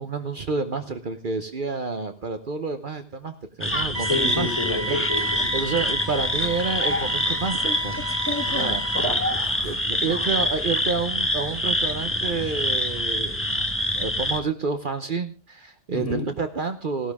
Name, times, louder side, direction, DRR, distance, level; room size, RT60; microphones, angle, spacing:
voice 1, 0.0-4.5 4.9-5.0 5.5-7.6 7.8-8.0 8.5-8.9 9.6-13.4 14.0-17.1, right 4 dB, 50° right, 7 dB, 1.1 m, -29 dB
sound 1, 3.6-14.4, left 1 dB, 10° left, 1.4 m, -26 dB
sound 2, 3.9-9.0, right 1 dB, 90° right, 2.9 m, -33 dB
voice 2, 4.1-5.5 9.0-9.7 15.9-16.3, left 2 dB, 30° left, 0 dB, 4.4 m, -29 dB
16.5 x 12.5 x 3.6 m, 0.32 s
omnidirectional pair, 1.1 m